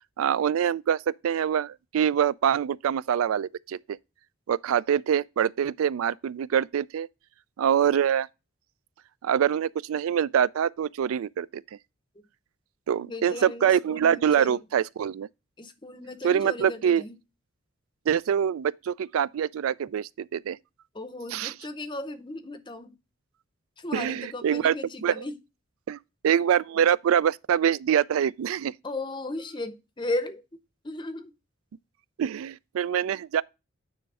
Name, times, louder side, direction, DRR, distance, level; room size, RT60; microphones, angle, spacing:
voice 1, 0.2-4.0 4.5-7.1 7.6-8.3 9.2-11.6 12.9-15.3 16.2-17.0 18.1-20.6 21.3-21.5 23.9-24.7 25.0-25.3 25.9-26.0 26.2-28.7 32.2-33.4, right 8 dB, 80° right, 0.3 m, -25 dB
voice 2, 13.0-14.6 15.6-17.1 20.9-22.9 23.8-25.3 28.8-30.4 30.8-31.3, left 2 dB, 20° left, 0.7 m, -35 dB
9.4 x 3.2 x 4.7 m
head